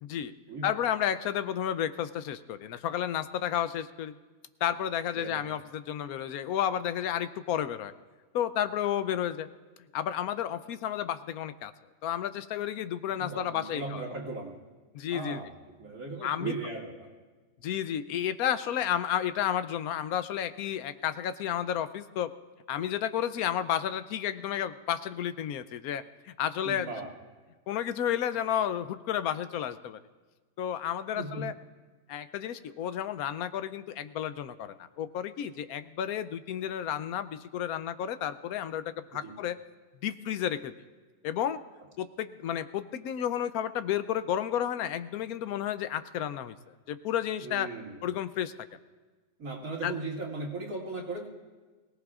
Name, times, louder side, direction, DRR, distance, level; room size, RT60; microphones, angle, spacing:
voice 1, 0.0-0.3 0.6-4.1 4.6-7.9 8.3-9.5 9.9-11.7 12.0-14.0 14.9-15.4 16.2-16.5 17.6-22.3 22.7-26.9 27.7-30.0 30.6-31.5 32.1-38.8 39.1-39.6 40.0-40.7 41.2-41.6 42.0-46.6 46.9-47.7 48.0-48.5 49.8-49.9, left 10 dB, 90° left, 12 dB, 1.1 m, -31 dB
voice 2, 5.1-5.4 13.1-14.5 15.1-15.5 15.8-17.1 26.6-27.1 31.1-31.5 39.1-39.4 47.4-48.0 49.4-51.3, right 3 dB, 90° right, -3 dB, 2.8 m, -37 dB
22.5 x 17.5 x 2.5 m, 1.3 s
omnidirectional pair, 1.5 m